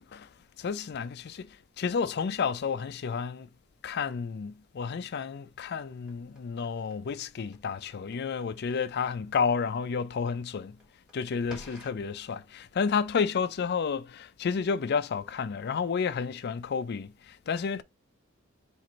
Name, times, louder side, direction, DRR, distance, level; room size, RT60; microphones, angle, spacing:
voice 1, 0.6-1.5 1.8-3.5 3.8-10.8 11.1-17.8, left 6 dB, 50° left, 0.4 m, -31 dB
sound 1, 5.8-12.1, left 1 dB, 5° right, 1.3 m, -54 dB
4.7 x 2.5 x 4.0 m
head